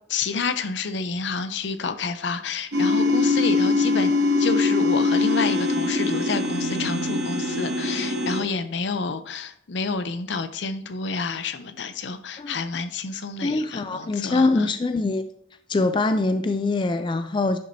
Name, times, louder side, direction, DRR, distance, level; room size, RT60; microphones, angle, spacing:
voice 1, 0.1-4.1 4.4-14.7, left 4 dB, 70° left, 11 dB, 0.6 m, -29 dB
sound 1, 2.7-8.4, left 3 dB, 60° right, 1.1 m, -22 dB
voice 2, 13.4-15.2 15.7-17.6, left 3 dB, 25° left, 9 dB, 0.3 m, -23 dB
10.0 x 6.1 x 2.7 m, 0.65 s
head